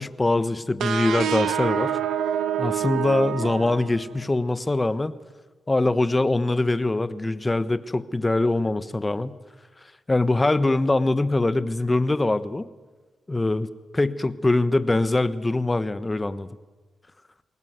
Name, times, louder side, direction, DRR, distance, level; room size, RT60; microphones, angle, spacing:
voice 1, 0.0-2.0 2.6-5.1 5.7-9.3 10.1-12.7 13.3-16.5, left 2 dB, 20° left, 14 dB, 1.1 m, -23 dB
sound 1, 0.8-4.3, right 9 dB, 90° right, 1.1 m, -27 dB
21.0 x 18.5 x 9.4 m, 1.3 s
cardioid pair, 80°, 0 cm